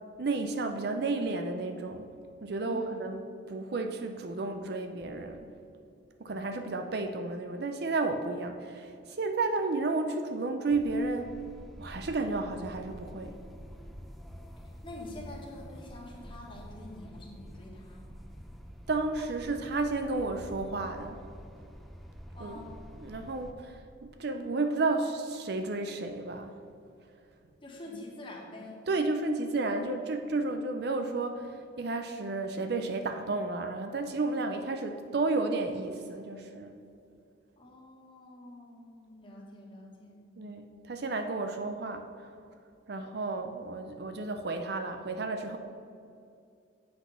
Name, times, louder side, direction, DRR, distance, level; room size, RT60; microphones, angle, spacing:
voice 1, 0.2-2.1 2.4-5.5 6.2-11.3 11.8-13.4 18.9-21.2 22.4-22.6 23.0-26.6 28.9-36.7 40.4-42.1 42.9-45.6, right 3 dB, 55° right, 6 dB, 0.5 m, -32 dB
voice 2, 2.6-3.2 14.8-18.0 22.3-22.7 27.6-28.8 37.6-40.2, left 1 dB, 25° left, -2 dB, 1.5 m, -46 dB
sound 1, 10.7-23.5, equal, ahead, 0.5 m, -47 dB
8.2 x 6.2 x 5.6 m, 2.5 s
head